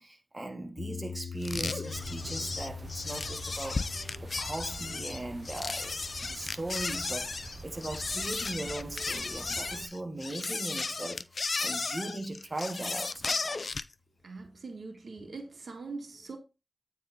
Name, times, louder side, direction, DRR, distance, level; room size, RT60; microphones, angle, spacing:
voice 1, 0.0-3.9 4.2-11.2 11.6-13.7, right 2 dB, 35° right, 1.6 m, -39 dB
sound 1, 0.8-11.0, left 6 dB, 75° left, 1.1 m, -46 dB
sound 2, 1.4-13.9, left 3 dB, 60° left, 0.4 m, -35 dB
sound 3, 1.9-9.9, right 3 dB, 50° right, 0.7 m, -46 dB
voice 2, 14.2-16.4, right 3 dB, 75° right, 1.5 m, -42 dB
9.1 x 3.6 x 4.2 m
cardioid pair, 60°, 0 cm